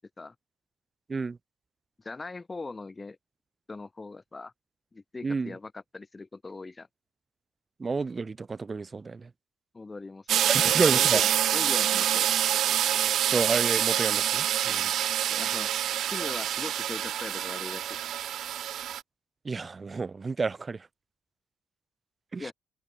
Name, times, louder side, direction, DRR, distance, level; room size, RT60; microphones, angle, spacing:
voice 1, 2.0-3.2 3.7-4.5 4.9-6.9 9.7-12.3 15.3-15.7 16.1-18.2 22.4-22.5, left 3 dB, 25° left, 6.4 m, -40 dB
voice 2, 5.2-5.5 7.8-9.3 10.5-11.2 13.3-14.9 19.4-20.9 22.3-22.5, right 4 dB, 30° right, 1.3 m, -30 dB
sound 1, 10.3-19.0, right 11 dB, 70° right, 0.5 m, -26 dB
cardioid pair, 90°, 0 cm